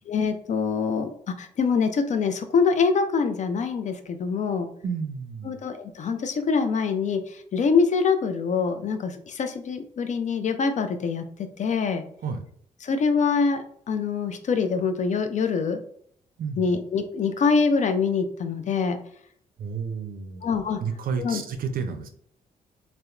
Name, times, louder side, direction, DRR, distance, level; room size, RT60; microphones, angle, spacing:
voice 1, 0.1-4.7 5.5-7.2 7.5-12.0 12.8-15.8 16.6-19.0 20.4-20.8 21.2-21.4, left 5 dB, 40° left, 8 dB, 0.4 m, -24 dB
voice 2, 4.8-5.6 12.2-12.4 16.4-16.7 19.6-20.4 20.8-22.1, right 5 dB, 50° right, 7 dB, 0.5 m, -31 dB
2.8 x 2.0 x 2.3 m, 0.63 s
hypercardioid pair, 40°, 18 cm